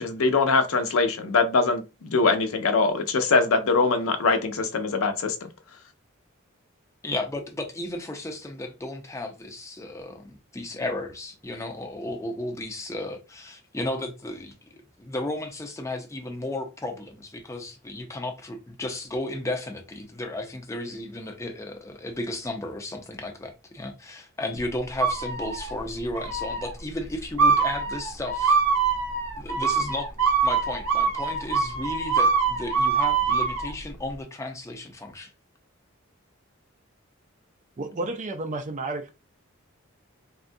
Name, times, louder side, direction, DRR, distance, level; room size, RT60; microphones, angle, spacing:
voice 1, 0.0-5.5, left 4 dB, 75° left, 0.5 m, -23 dB
voice 2, 7.0-28.6 29.4-30.1 30.4-35.3, left 1 dB, 15° left, 0.6 m, -34 dB
sound 1, 25.0-25.7 26.1-26.7 27.4-33.7, right 5 dB, 80° right, 0.9 m, -24 dB
voice 3, 37.8-39.1, right 2 dB, 35° right, 0.4 m, -31 dB
3.5 x 2.2 x 2.6 m
head